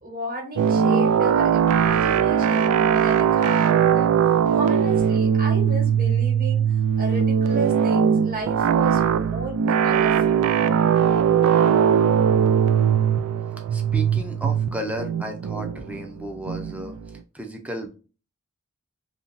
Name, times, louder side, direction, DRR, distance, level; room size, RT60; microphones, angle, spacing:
voice 1, 0.0-4.2 4.5-6.6 7.0-10.4, right 1 dB, 40° right, -1 dB, 1.4 m, -33 dB
sound 1, 0.6-17.1, right 8 dB, 85° right, 0.3 m, -20 dB
voice 2, 13.7-17.9, right 1 dB, 5° right, 3 dB, 0.6 m, -34 dB
3.0 x 2.8 x 3.9 m, 0.34 s
head